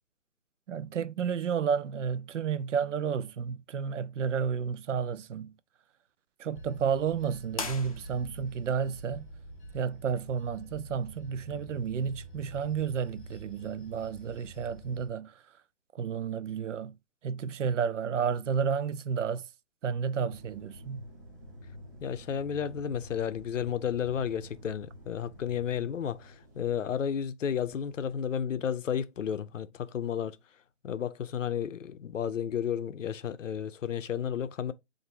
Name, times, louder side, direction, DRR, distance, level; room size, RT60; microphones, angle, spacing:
voice 1, 0.7-5.5 6.4-9.3 9.7-15.4 15.9-17.0 17.2-19.5 19.8-21.0, right 7 dB, 75° right, 0.5 m, -31 dB
Bell / Train, 6.5-15.1, right 1 dB, 10° left, 0.9 m, -47 dB
sound 1, 7.5-8.6, left 4 dB, 30° left, 0.5 m, -39 dB
sound 2, 20.3-26.7 27.4-28.1, left 1 dB, 15° right, 0.5 m, -48 dB
voice 2, 22.0-30.4 30.8-34.7, left 8 dB, 90° left, 0.6 m, -32 dB
3.9 x 2.6 x 4.3 m
hypercardioid pair, 160°, 37 cm